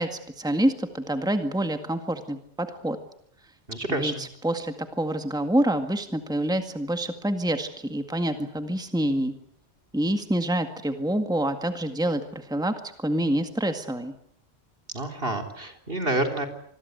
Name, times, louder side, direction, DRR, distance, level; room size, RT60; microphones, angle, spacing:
voice 1, 0.0-3.0 3.9-9.3 9.9-14.1, right 1 dB, 5° right, 7 dB, 1.9 m, -27 dB
voice 2, 3.7-4.2 14.9-16.5, right 1 dB, 55° right, 5 dB, 3.9 m, -28 dB
26.5 x 21.5 x 8.1 m, 0.66 s
omnidirectional pair, 1.2 m